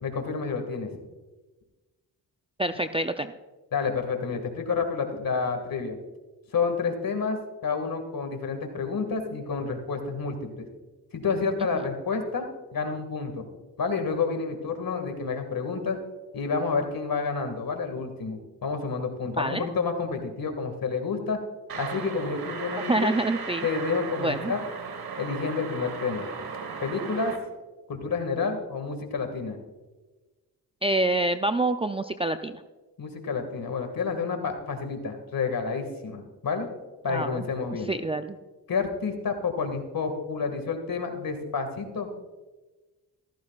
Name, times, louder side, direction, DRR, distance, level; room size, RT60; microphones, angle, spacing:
voice 1, 0.0-0.9 3.7-6.0 6.5-10.7 11.1-13.5 13.8-16.0 16.3-21.4 21.8-23.2 23.6-24.6 25.2-26.3 26.8-27.3 27.9-29.6 33.0-36.7 37.0-37.9 38.7-42.1, left 5 dB, 50° left, 5 dB, 2.1 m, -29 dB
voice 2, 2.6-3.3 19.4-19.7 22.9-23.7 24.2-24.5 30.8-32.6 37.1-38.4, right 2 dB, 15° right, 8 dB, 0.4 m, -27 dB
sound 1, 21.7-27.4, right 6 dB, 55° right, 1.7 m, -36 dB
14.0 x 14.0 x 2.4 m, 1.2 s
supercardioid pair, 60°, 43 cm